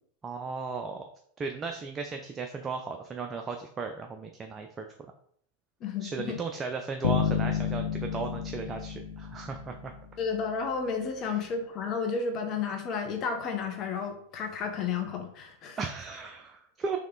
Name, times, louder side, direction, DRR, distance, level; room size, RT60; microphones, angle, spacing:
voice 1, 0.2-1.1 1.4-4.9 6.0-9.9 11.2-11.4 15.8-17.0, right 4 dB, 25° right, 4 dB, 0.4 m, -36 dB
voice 2, 5.8-6.4 10.2-15.8, left 5 dB, 40° left, 4 dB, 0.9 m, -32 dB
Bass guitar, 7.0-10.1, left 9 dB, 75° left, 0.5 m, -31 dB
3.5 x 3.1 x 3.7 m, 0.65 s
hypercardioid pair, 100°, 0 cm